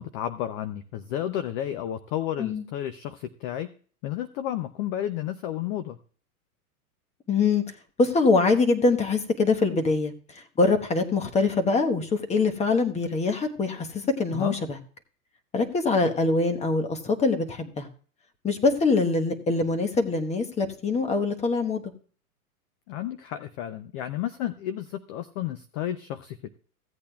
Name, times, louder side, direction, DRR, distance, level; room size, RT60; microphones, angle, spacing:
voice 1, 0.0-3.7 4.0-6.0 14.3-14.6 22.9-26.5, left 11 dB, 35° left, 11 dB, 0.5 m, -32 dB
voice 2, 7.3-7.6 8.0-14.8 15.5-17.9 18.4-21.8, left 3 dB, 15° left, 6 dB, 1.1 m, -24 dB
16.0 x 8.4 x 2.3 m, 0.43 s
hypercardioid pair, 115°, 45 cm